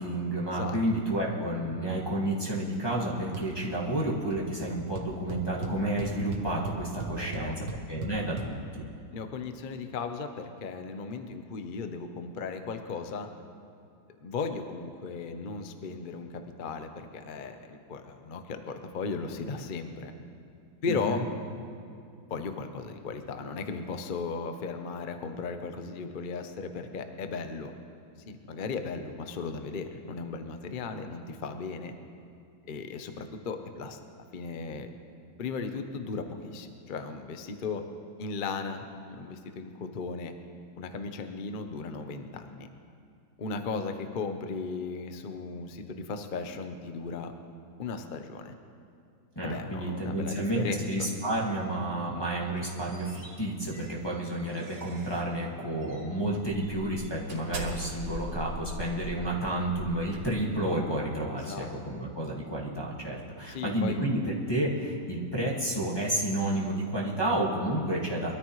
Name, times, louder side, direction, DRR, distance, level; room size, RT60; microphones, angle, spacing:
voice 1, 0.0-7.6 7.9-8.8 20.9-21.2 49.4-64.2 64.5-68.3, right 1 dB, 15° left, -6 dB, 1.8 m, -30 dB
sound 1, 3.3-3.7 4.0-4.4 4.6-4.7 5.0-8.5, right 4 dB, 60° right, 1.8 m, -37 dB
voice 2, 7.2-7.5 9.1-13.3 14.2-20.1 20.8-21.2 22.3-27.7 28.3-31.9 32.7-34.0 34.3-34.9 35.4-37.8 38.2-40.3 40.8-42.7 43.4-47.3 47.8-48.5 49.4-51.1 61.4-61.7 63.5-64.1, left 4 dB, 65° left, 7 dB, 0.5 m, -36 dB
sound 2, 52.4-55.3 55.8-56.0 56.5-60.7, right 1 dB, 80° right, 3.0 m, -41 dB
22.5 x 13.5 x 3.2 m, 2.5 s
omnidirectional pair, 2.2 m